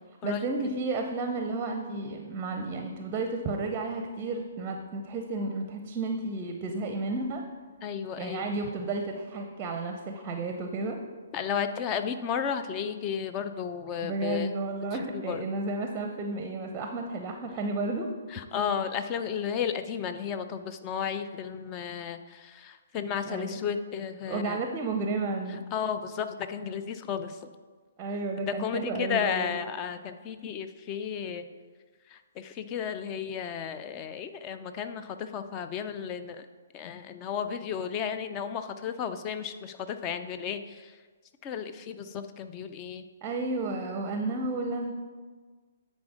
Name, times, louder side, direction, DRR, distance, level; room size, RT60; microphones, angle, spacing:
voice 1, 0.2-7.4 8.2-11.0 14.0-18.1 23.3-23.6 24.3-25.6 28.0-29.5 43.2-44.9, right 3 dB, 20° right, 4 dB, 0.7 m, -32 dB
voice 2, 7.8-8.5 11.3-14.5 15.1-15.4 18.3-24.6 25.7-27.4 28.5-31.4 32.1-36.5 36.7-41.0 41.4-43.0, left 7 dB, 25° left, 9 dB, 0.5 m, -33 dB
9.5 x 4.3 x 4.9 m, 1.5 s
figure-of-eight pair, 125°, 0 cm